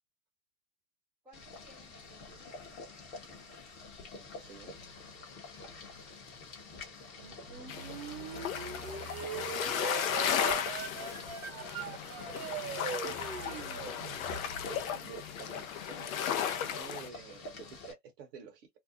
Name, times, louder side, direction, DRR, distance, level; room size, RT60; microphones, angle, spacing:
voice 1, 1.2-2.7 8.4-9.3 12.8-13.2, right 4 dB, 5° right, 0.5 m, -59 dB
Boiling, 1.3-17.9, left 3 dB, 20° left, 0.8 m, -48 dB
voice 2, 4.4-4.7 14.7-16.3 16.6-18.7, right 7 dB, 40° right, 0.8 m, -49 dB
sound 1, 7.2-14.8, right 7 dB, 60° right, 1.0 m, -41 dB
sound 2, 7.7-17.1, left 9 dB, 60° left, 0.6 m, -35 dB
2.6 x 2.0 x 2.5 m
hypercardioid pair, 115°, 49 cm